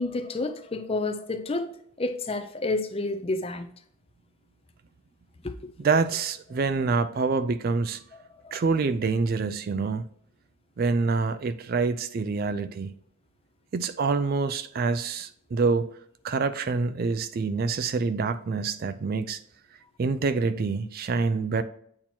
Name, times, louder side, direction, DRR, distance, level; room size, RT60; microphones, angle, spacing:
voice 1, 0.0-1.7 2.0-3.7 5.4-5.7 8.4-8.6, left 2 dB, 25° left, 0.5 m, -30 dB
voice 2, 5.8-8.0 8.5-10.0 10.8-12.9 13.7-15.9 16.2-19.4 20.0-21.6, right 4 dB, 45° right, 0.3 m, -26 dB
8.6 x 2.9 x 4.3 m
head